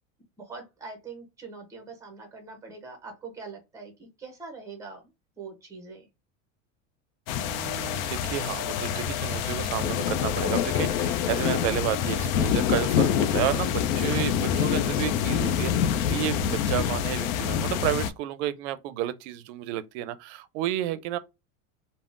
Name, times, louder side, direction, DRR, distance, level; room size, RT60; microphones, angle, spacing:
voice 1, 0.4-5.1 5.4-6.1 20.9-21.0, right 4 dB, 10° right, 0.5 m, -43 dB
sound 1, 7.3-18.1, left 8 dB, 80° left, 0.5 m, -26 dB
voice 2, 7.4-21.2, right 13 dB, 60° right, 0.5 m, -31 dB
3.5 x 2.0 x 2.4 m
supercardioid pair, 170°, 40 cm